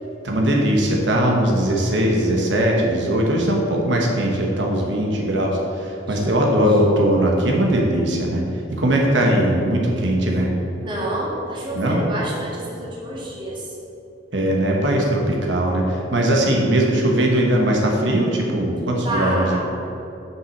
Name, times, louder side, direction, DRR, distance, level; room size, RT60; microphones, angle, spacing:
voice 1, 0.2-8.4 8.7-10.5 11.7-12.0 14.3-19.6, right 1 dB, 80° right, 0 dB, 1.1 m, -20 dB
voice 2, 6.1-6.8 10.8-13.8 19.0-19.6, right 1 dB, 25° right, -5 dB, 1.7 m, -29 dB
6.2 x 5.6 x 6.5 m, 3.0 s
head